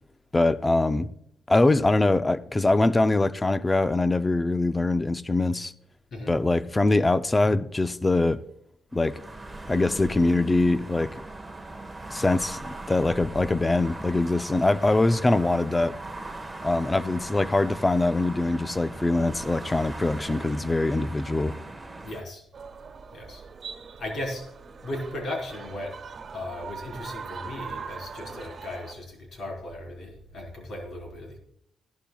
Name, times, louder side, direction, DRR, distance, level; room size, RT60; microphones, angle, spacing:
voice 1, 0.3-1.1 1.5-5.7 6.3-8.4 8.9-9.2 9.7-11.1 12.1-15.9 16.6-21.5, left 2 dB, 20° left, 0.6 m, -23 dB
sound 1, 8.9-22.2, right 2 dB, 10° right, 1.3 m, -40 dB
voice 2, 22.0-22.4 23.1-23.4 24.0-24.5 24.8-26.0 26.3-31.4, left 1 dB, 55° left, 4.2 m, -36 dB
sound 2, 22.5-28.9, right 5 dB, 45° right, 1.5 m, -41 dB
16.5 x 11.5 x 2.3 m
cardioid pair, 90°, 0 cm